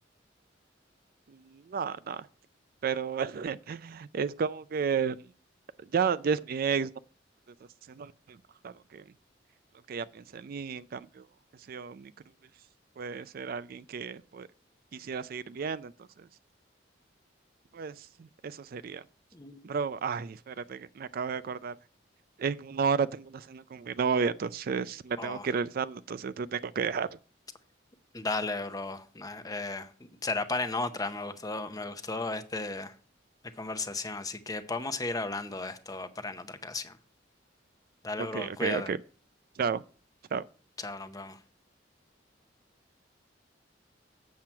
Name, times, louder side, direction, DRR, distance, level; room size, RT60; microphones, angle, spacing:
voice 1, 1.3-2.3 2.8-5.2 5.9-6.9 7.9-8.1 8.6-9.0 9.9-11.2 11.7-12.1 13.0-14.5 14.9-15.9 17.7-18.1 18.4-19.0 19.6-21.8 22.4-27.1 38.2-39.0 39.6-39.8 40.3-40.4, right 6 dB, 50° right, 0.4 m, -32 dB
voice 2, 25.2-25.5 28.1-32.9 33.6-36.9 38.0-38.9 40.8-41.4, left 3 dB, 20° left, 0.7 m, -35 dB
7.5 x 7.3 x 4.4 m
head